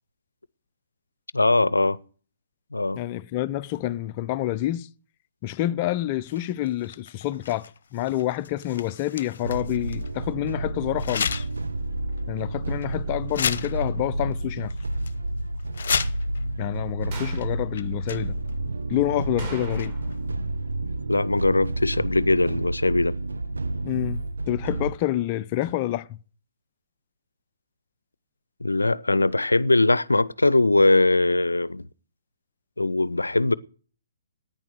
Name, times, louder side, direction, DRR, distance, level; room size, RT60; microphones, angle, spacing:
voice 1, 1.3-2.0 2.7-3.0 21.1-23.1 28.6-31.9 32.8-33.5, left 2 dB, 85° left, 0.6 m, -21 dB
voice 2, 2.9-4.9 5.4-11.5 12.3-14.7 16.6-18.4 18.9-19.9 23.8-26.2, left 14 dB, 35° left, 0.6 m, -28 dB
sound 1, 6.2-10.1 11.0-11.7 12.1-12.2 12.8-13.0 13.3-14.1 14.3-14.4 14.7-15.1 15.6-16.4 17.3-17.5 17.7-18.5 19.6-20.2, left 6 dB, 60° left, 0.9 m, -33 dB
sound 2, 9.4-25.0, right 2 dB, 75° right, 0.8 m, -30 dB
sound 3, 17.1-17.6 19.4-20.2 20.5-20.6 25.6-25.7, right 3 dB, 30° right, 3.9 m, -39 dB
10.5 x 9.5 x 7.8 m
figure-of-eight pair, 130°, 0 cm